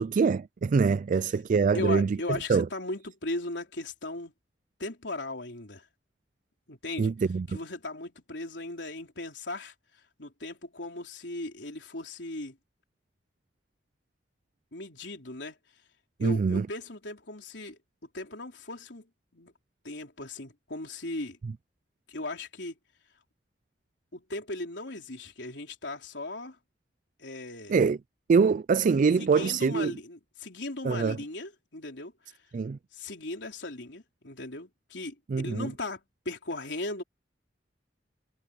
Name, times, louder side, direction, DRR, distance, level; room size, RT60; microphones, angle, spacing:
voice 1, 0.0-2.7 7.0-7.6 16.2-16.7 27.7-28.0 28.3-29.9 30.8-31.2 32.5-32.8 35.3-35.7, right 5 dB, 45° right, 0.3 m, -24 dB
voice 2, 1.7-4.3 4.8-5.8 6.7-7.1 7.5-9.7 10.2-12.6 14.7-15.6 16.2-17.8 18.1-19.1 19.3-19.5 19.8-21.4 22.1-22.8 24.1-26.6 27.2-27.8 29.2-32.4 32.9-37.0, left 2 dB, 80° left, 3.9 m, -37 dB
head